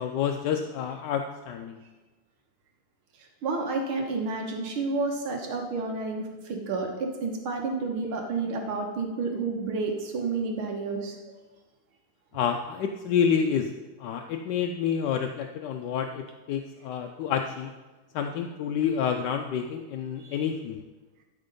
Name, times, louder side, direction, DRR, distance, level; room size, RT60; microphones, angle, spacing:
voice 1, 0.0-1.8 12.3-13.7 14.0-17.7 18.1-20.8, left 7 dB, 75° left, 4 dB, 1.0 m, -28 dB
voice 2, 3.4-11.2 20.2-20.3, right 3 dB, 80° right, 2 dB, 2.0 m, -30 dB
12.5 x 4.4 x 5.3 m, 1.2 s
omnidirectional pair, 2.3 m